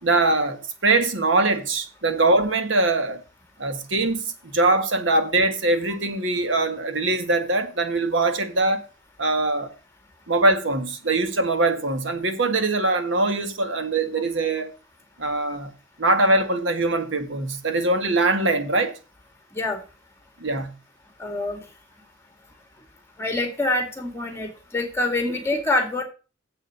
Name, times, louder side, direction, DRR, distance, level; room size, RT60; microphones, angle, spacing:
voice 1, 0.0-3.2 3.6-8.8 9.2-9.7 10.3-14.7 15.2-15.7 16.0-19.0 20.4-20.7, right 2 dB, 65° right, 1.6 m, -22 dB
voice 2, 21.2-21.6 23.2-26.0, left 2 dB, 15° left, 2.2 m, -25 dB
7.5 x 7.0 x 6.5 m
head